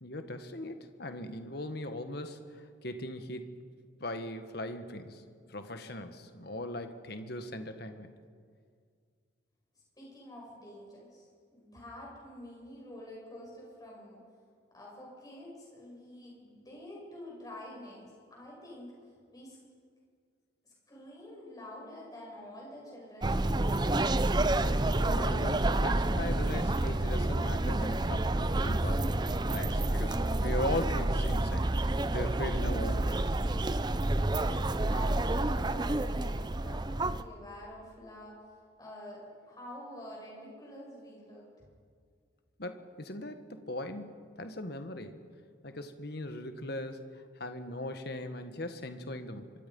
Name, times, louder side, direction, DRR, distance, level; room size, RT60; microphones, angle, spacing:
voice 1, 0.0-3.6 4.0-5.2 5.5-8.1 25.1-33.4 42.6-45.2 45.6-49.5, left 1 dB, 55° left, 8 dB, 1.5 m, -39 dB
voice 2, 9.7-14.2 14.7-19.6 20.6-24.1 34.5-41.6, left 1 dB, 20° left, -3 dB, 7.3 m, -48 dB
sound 1, 23.2-37.2, right 2 dB, 20° right, 0.6 m, -29 dB
25.0 x 24.0 x 5.5 m, 2.1 s
head